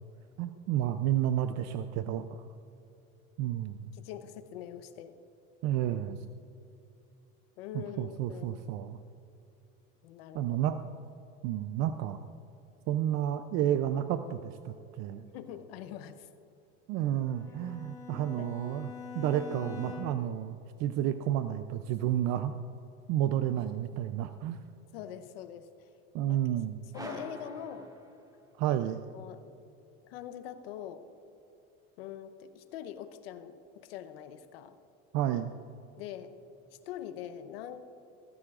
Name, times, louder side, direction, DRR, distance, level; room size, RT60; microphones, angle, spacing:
voice 1, 0.4-2.4 3.4-3.9 5.6-6.2 7.7-9.0 10.3-10.8 11.4-12.2 12.9-15.3 16.9-22.5 23.1-24.6 26.1-26.8 28.6-29.0 35.1-35.5, right 11 dB, 65° right, 10 dB, 0.6 m, -31 dB
voice 2, 3.9-5.2 7.6-8.6 10.0-10.4 15.3-16.3 18.4-18.5 24.9-25.9 26.3-26.6 26.9-27.9 28.7-28.8 29.1-29.5 30.0-31.0 32.0-34.8 36.0-36.3 36.7-37.9, left 10 dB, 90° left, 10 dB, 0.9 m, -43 dB
Bowed string instrument, 17.3-20.4, left 7 dB, 10° left, 1.7 m, -44 dB
sound 1, 26.9-28.7, right 1 dB, 10° right, 1.7 m, -45 dB
18.0 x 15.0 x 2.5 m, 2.8 s
supercardioid pair, 100°, 29 cm